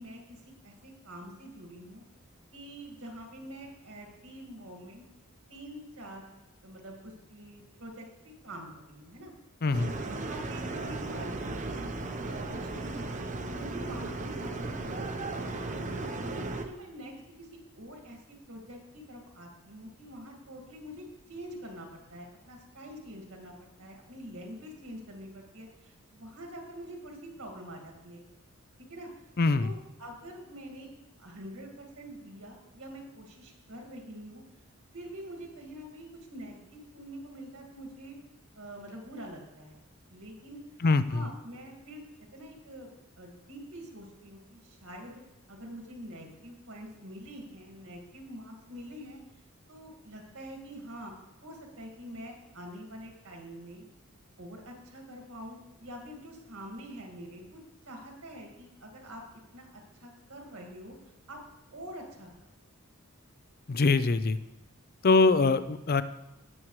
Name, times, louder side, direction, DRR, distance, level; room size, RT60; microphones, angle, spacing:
voice 1, 0.0-2.0 2.5-5.0 5.5-6.3 6.6-9.3 10.0-12.0 12.2-13.2 13.5-15.9 16.3-28.2 28.8-29.1 29.6-30.9 31.2-34.4 34.9-38.2 38.6-39.8 40.1-40.6 41.1-42.9 43.2-45.1 45.5-49.2 49.7-51.1 51.4-53.9 54.4-59.2 59.5-61.4 61.7-62.3, equal, 70° right, 0 dB, 2.0 m, -46 dB
voice 2, 9.6-10.0 29.4-29.7 40.8-41.3 63.7-64.4 65.0-66.0, left 3 dB, 45° left, 13 dB, 0.5 m, -23 dB
sound 1, 9.7-16.7, right 2 dB, 35° right, 0.8 m, -36 dB
17.5 x 7.3 x 3.2 m, 0.92 s
head